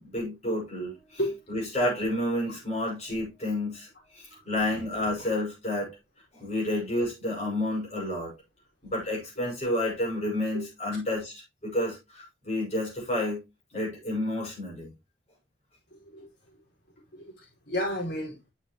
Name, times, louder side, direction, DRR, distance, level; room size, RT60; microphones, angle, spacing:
voice 1, 0.0-1.2 1.5-3.9 4.1-5.9 6.3-8.3 8.8-13.4 13.7-14.9, left 1 dB, 35° left, 5.7 m, -30 dB
voice 2, 17.1-18.5, equal, 65° left, 4.8 m, -32 dB
9.0 x 6.7 x 3.0 m
head